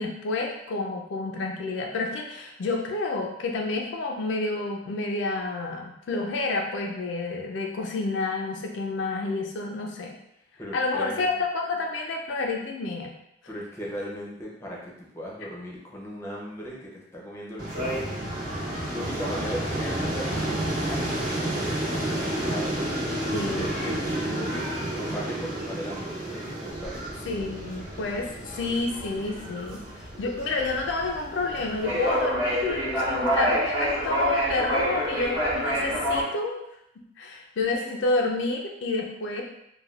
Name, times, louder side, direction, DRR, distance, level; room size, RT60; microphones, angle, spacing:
voice 1, 0.0-10.1 10.7-13.2 23.3-24.5 27.3-36.6 37.2-39.4, left 3 dB, 75° left, 1 dB, 0.4 m, -29 dB
voice 2, 10.6-11.3 13.5-18.3 18.9-20.3 20.9-22.8 23.5-27.0, equal, 15° left, -4 dB, 0.5 m, -38 dB
sound 1, 17.6-32.2, right 1 dB, 50° right, 0.9 m, -31 dB
sound 2, 26.7-36.2, equal, 20° right, 1.0 m, -27 dB
3.2 x 2.2 x 2.3 m, 0.80 s
head